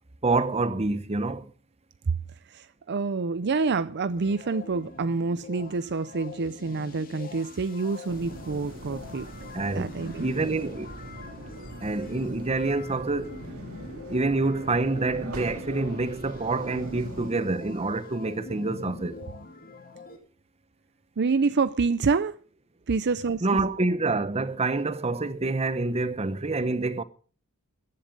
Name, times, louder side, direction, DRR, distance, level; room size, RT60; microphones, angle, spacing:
voice 1, 0.2-1.5 9.5-9.9 10.2-10.9 11.8-13.4 14.1-19.2 23.4-27.0, right 3 dB, 30° right, 0.9 m, -27 dB
voice 2, 2.5-9.3 9.7-10.3 21.2-22.4 22.9-23.6, right 4 dB, 50° right, 0.6 m, -27 dB
sound 1, 4.2-20.2, left 3 dB, 40° left, 2.5 m, -44 dB
sound 2, 8.1-17.3, right 1 dB, 70° right, 2.7 m, -42 dB
14.5 x 11.0 x 5.3 m
head